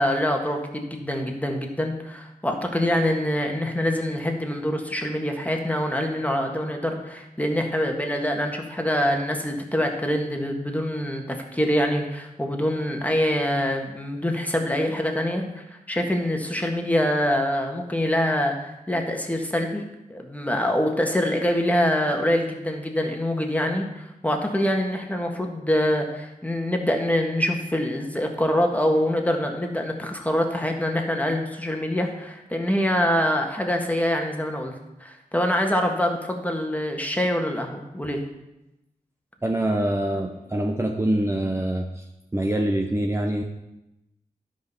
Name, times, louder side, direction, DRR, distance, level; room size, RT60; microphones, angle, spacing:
voice 1, 0.0-19.8 20.1-34.7 35.0-38.3, equal, 10° left, 2 dB, 1.7 m, -25 dB
voice 2, 39.4-42.0 42.3-43.4, right 1 dB, 20° right, 2 dB, 0.8 m, -25 dB
11.5 x 5.2 x 5.6 m, 0.91 s
cardioid pair, 65°, 15 cm